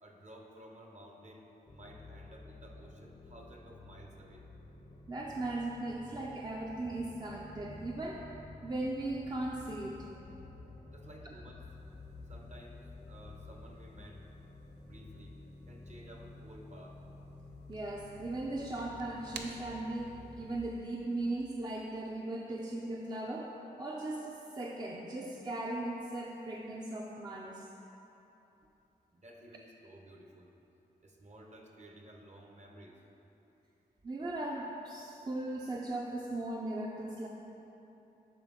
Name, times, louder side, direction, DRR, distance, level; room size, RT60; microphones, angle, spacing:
voice 1, 0.0-4.5 10.9-11.6 12.2-14.2 14.7-15.4 15.7-17.2 29.1-30.5 31.0-33.0 35.0-35.3, right 1 dB, 45° right, 1 dB, 0.9 m, -54 dB
sound 1, 1.7-20.6, left 2 dB, 25° left, 0.6 m, -51 dB
voice 2, 5.1-8.2 8.6-10.7 17.7-27.6 34.0-37.3, right 2 dB, 25° right, -2 dB, 0.5 m, -38 dB
sound 2, 11.7-21.9, right 5 dB, 85° right, 0.4 m, -56 dB
9.8 x 3.5 x 3.7 m, 3.0 s
cardioid pair, 50°, 17 cm